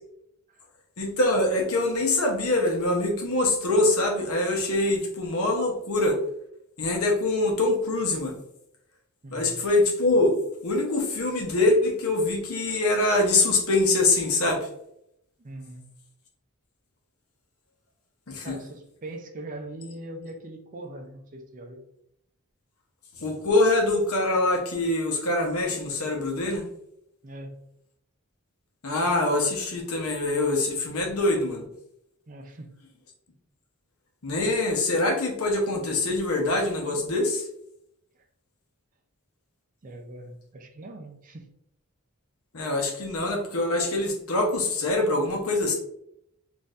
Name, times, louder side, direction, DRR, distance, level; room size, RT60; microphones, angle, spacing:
voice 1, 1.0-6.2 6.8-8.4 9.3-10.4 10.6-14.7 18.3-18.6 23.2-26.7 28.8-31.7 34.2-37.5 42.5-45.7, left 2 dB, 75° left, 2 dB, 0.8 m, -24 dB
voice 2, 9.2-9.7 15.4-15.9 18.4-21.9 27.2-27.6 32.3-32.8 39.8-41.5, right 1 dB, 35° right, 4 dB, 0.5 m, -41 dB
4.1 x 2.6 x 2.4 m, 0.77 s
head